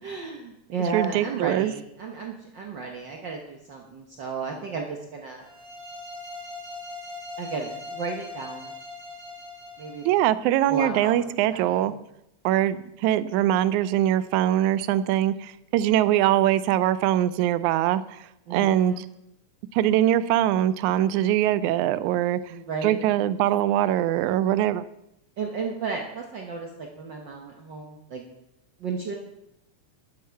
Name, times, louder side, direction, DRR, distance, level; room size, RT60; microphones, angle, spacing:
voice 1, 0.0-5.5 7.4-8.7 9.8-10.0 10.7-11.9 18.5-19.1 22.5-23.0 25.4-28.2 28.8-29.1, right 4 dB, 65° right, 1 dB, 1.1 m, -33 dB
voice 2, 0.9-1.7 10.1-11.9 12.5-18.2 18.5-19.1 19.7-22.4 22.8-24.9, right 12 dB, 85° right, 15 dB, 2.0 m, -22 dB
sound 1, 5.4-10.2, left 2 dB, 40° right, 2.3 m, -40 dB
11.5 x 9.1 x 4.6 m, 0.83 s
omnidirectional pair, 3.4 m